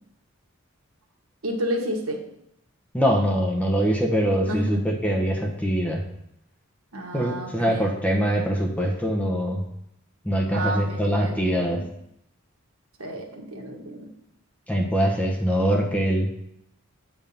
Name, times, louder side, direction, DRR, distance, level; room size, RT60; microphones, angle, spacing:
voice 1, 1.4-2.2 4.1-4.8 6.9-8.2 10.5-11.8 13.0-14.1, right 1 dB, 80° right, 1 dB, 1.5 m, -31 dB
voice 2, 2.9-6.0 7.1-9.6 10.2-11.8 14.7-16.3, equal, 5° left, 0 dB, 0.9 m, -23 dB
8.7 x 3.6 x 5.4 m, 0.78 s
head